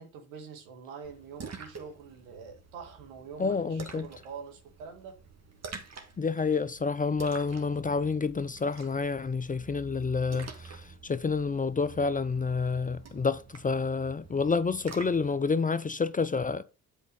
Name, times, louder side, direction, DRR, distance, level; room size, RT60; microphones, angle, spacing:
voice 1, 0.0-5.2, right 6 dB, 75° right, 1.8 m, -45 dB
Splash splatter, 1.0-15.3, right 5 dB, 40° right, 2.0 m, -48 dB
voice 2, 3.4-4.0 6.2-10.8 11.0-16.6, left 4 dB, 20° left, 0.5 m, -29 dB
8.4 x 4.6 x 5.3 m
hypercardioid pair, 50°, 42 cm